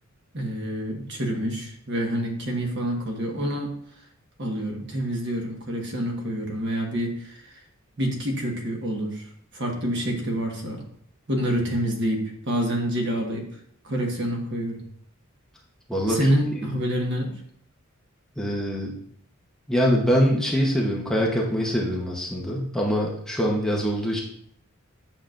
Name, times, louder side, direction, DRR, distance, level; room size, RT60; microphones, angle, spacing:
voice 1, 0.3-3.7 4.4-7.6 8.0-9.3 9.5-10.8 11.3-13.5 13.8-14.8 16.1-17.3, equal, 55° right, 1 dB, 1.4 m, -27 dB
voice 2, 15.9-16.7 18.4-18.9 19.7-24.2, equal, ahead, -2 dB, 0.8 m, -24 dB
9.1 x 6.0 x 2.5 m, 0.67 s
head